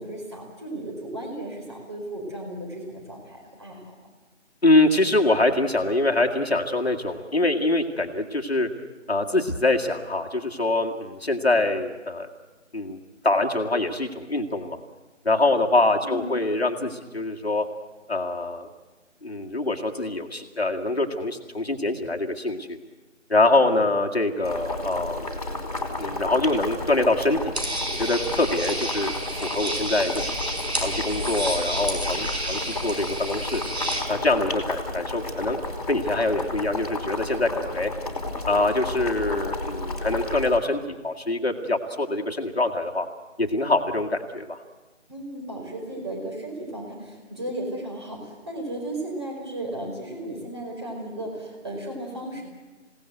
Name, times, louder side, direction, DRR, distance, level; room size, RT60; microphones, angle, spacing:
voice 1, 0.0-4.1 16.0-16.3 45.1-52.4, right 1 dB, 20° right, 0 dB, 4.8 m, -35 dB
voice 2, 4.6-8.7 9.1-12.3 12.7-13.0 13.2-14.8 15.2-17.6 18.1-18.7 19.2-22.8 23.3-25.3 26.0-27.5 27.9-30.3 30.8-33.6 34.1-35.6 35.9-37.9 38.5-43.1 43.4-44.6, left 2 dB, 55° left, 2 dB, 2.2 m, -24 dB
Boiling, 24.4-40.6, left 2 dB, 30° left, 3.0 m, -32 dB
sound 1, 27.5-34.0, right 1 dB, 55° right, 6.3 m, -31 dB
28.0 x 18.0 x 8.0 m, 1.2 s
figure-of-eight pair, 165°, 38 cm